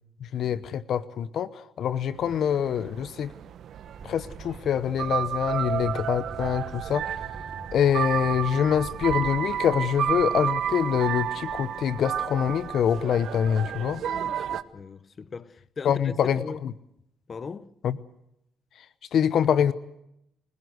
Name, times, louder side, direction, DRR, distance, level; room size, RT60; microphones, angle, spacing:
voice 1, 0.2-3.3 4.0-7.0 7.7-14.0 15.8-16.7 17.8-18.0 19.1-19.7, left 8 dB, 70° left, 0.9 m, -25 dB
sound 1, 2.1-14.6, right 9 dB, 70° right, 1.2 m, -31 dB
sound 2, 3.9-9.6, right 2 dB, 20° right, 4.5 m, -45 dB
voice 2, 13.9-16.6 17.3-17.7, left 5 dB, 40° left, 1.0 m, -39 dB
30.0 x 16.5 x 8.1 m
cardioid pair, 90°, 0 cm